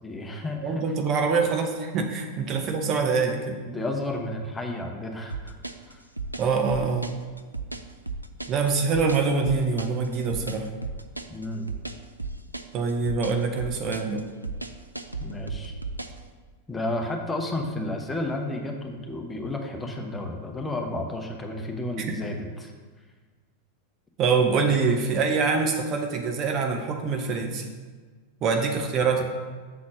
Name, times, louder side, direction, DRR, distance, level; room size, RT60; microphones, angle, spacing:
voice 1, 0.0-0.8 2.6-2.7 3.7-5.5 5.9-6.0 11.3-11.7 15.2-15.7 16.7-22.7, left 1 dB, 10° left, 2 dB, 0.9 m, -32 dB
voice 2, 0.6-3.6 6.4-7.2 8.5-10.7 12.7-14.2 22.0-22.1 24.2-27.7 28.4-29.2, right 4 dB, 35° right, 4 dB, 0.8 m, -25 dB
sound 1, 5.3-16.2, right 3 dB, 85° right, 0.4 m, -35 dB
7.0 x 4.2 x 6.1 m, 1.4 s
figure-of-eight pair, 90°, 0 cm